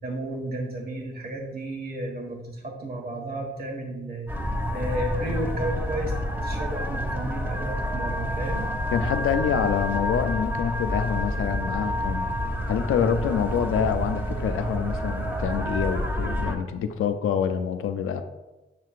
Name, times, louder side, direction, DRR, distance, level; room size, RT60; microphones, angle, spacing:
voice 1, 0.0-4.3 4.7-6.1 6.4-8.7, right 1 dB, 50° right, 0 dB, 1.5 m, -33 dB
sound 1, 4.3-16.6, equal, 10° right, 1.2 m, -28 dB
voice 2, 8.9-12.3 12.7-18.2, left 7 dB, 85° left, 8 dB, 0.5 m, -26 dB
7.4 x 6.7 x 2.4 m, 1.1 s
cardioid pair, 50°, 21 cm